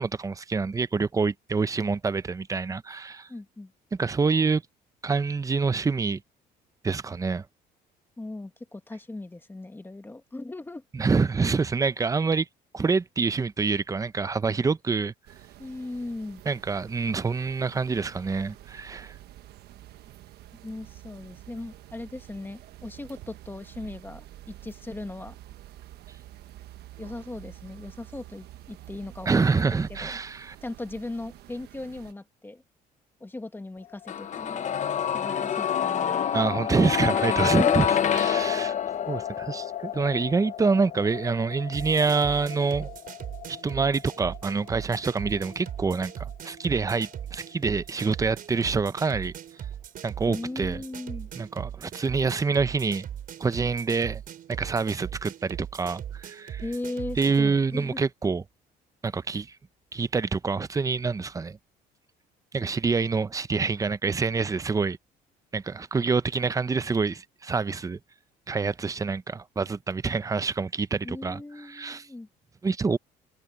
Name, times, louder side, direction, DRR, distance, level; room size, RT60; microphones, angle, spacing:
voice 1, 0.0-3.3 3.9-4.6 5.0-6.2 6.8-7.4 10.9-12.5 12.7-15.1 16.5-19.1 29.3-30.5 36.3-37.9 38.1-38.7 39.1-42.9 43.5-49.3 50.0-50.8 51.4-53.1 53.4-54.2 54.5-56.6 57.2-58.4 59.0-59.6 59.9-61.6 62.5-65.0 65.5-68.0 68.5-72.1 72.6-73.0, right 4 dB, 20° right, 0.7 m, -26 dB
voice 2, 3.3-3.7 8.2-10.8 15.6-16.4 20.6-25.4 27.0-30.2 30.6-32.6 33.2-34.7 35.1-36.3 37.5-38.0 50.3-51.3 56.6-58.0 71.0-72.3, left 2 dB, 10° left, 1.5 m, -38 dB
sound 1, 15.3-32.1, right 14 dB, 75° right, 1.2 m, -48 dB
sound 2, 34.1-45.9 46.2-46.3, left 8 dB, 45° left, 0.9 m, -28 dB
sound 3, 41.7-57.5, right 10 dB, 55° right, 4.6 m, -39 dB
cardioid pair, 110°, 17 cm